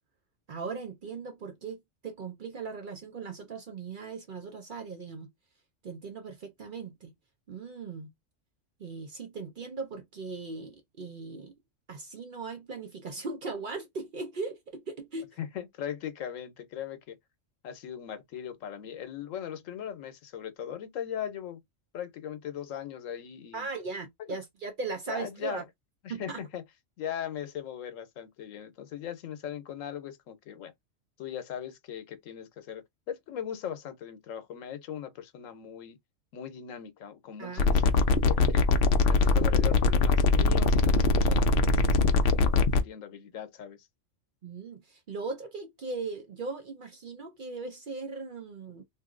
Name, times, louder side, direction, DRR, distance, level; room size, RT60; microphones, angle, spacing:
voice 1, 0.5-5.3 5.8-7.1 7.5-8.1 8.8-11.6 11.9-15.4 23.5-25.6 26.1-26.4 37.4-37.7 39.2-39.3 42.0-42.2 44.4-48.8, right 4 dB, 55° right, 0.6 m, -38 dB
voice 2, 15.4-17.2 17.6-21.6 21.9-23.7 24.3-24.4 25.1-25.6 26.0-26.6 27.0-30.7 31.2-36.0 36.3-38.6 39.0-43.9, left 9 dB, 85° left, 1.1 m, -39 dB
sound 1, 37.6-42.8, left 3 dB, 60° left, 0.7 m, -22 dB
2.6 x 2.6 x 3.7 m
omnidirectional pair, 1.3 m